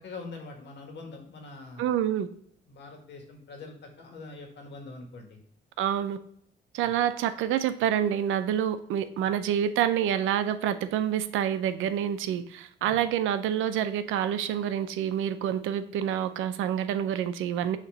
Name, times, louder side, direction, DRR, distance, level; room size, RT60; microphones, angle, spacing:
voice 1, 0.0-1.9 2.7-5.4 6.8-6.9 9.2-9.3 12.8-13.0, left 3 dB, 65° left, 3 dB, 1.8 m, -44 dB
voice 2, 1.8-2.3 5.8-6.2 6.7-17.8, right 10 dB, 85° right, 11 dB, 0.5 m, -27 dB
6.6 x 3.0 x 5.6 m, 0.66 s
cardioid pair, 90°, 20 cm